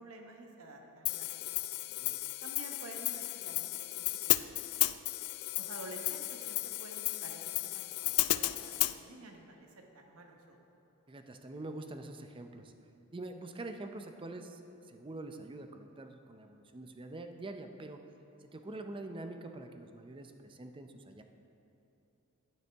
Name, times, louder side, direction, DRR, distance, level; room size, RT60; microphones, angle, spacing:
voice 1, 0.0-1.6 2.4-4.9 5.6-10.6, right 2 dB, 70° right, 2 dB, 1.1 m, -51 dB
Hi-hat, 1.1-9.0, left 17 dB, 90° left, 0.3 m, -34 dB
voice 2, 11.1-12.7 13.1-18.0 18.4-21.2, right 2 dB, 25° right, 6 dB, 0.5 m, -45 dB
10.5 x 9.3 x 3.5 m, 2.8 s
head